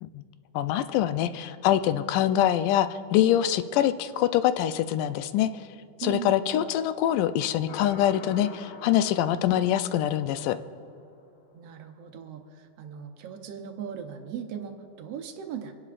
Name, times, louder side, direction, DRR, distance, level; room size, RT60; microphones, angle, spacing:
voice 1, 0.6-5.5 6.0-10.6, left 11 dB, 85° left, 11 dB, 2.1 m, -24 dB
voice 2, 6.0-6.3 11.5-15.7, right 8 dB, 75° right, 5 dB, 1.5 m, -38 dB
sound 1, 7.7-11.1, left 4 dB, 70° left, 2.5 m, -45 dB
28.0 x 11.0 x 2.5 m, 2.6 s
omnidirectional pair, 3.7 m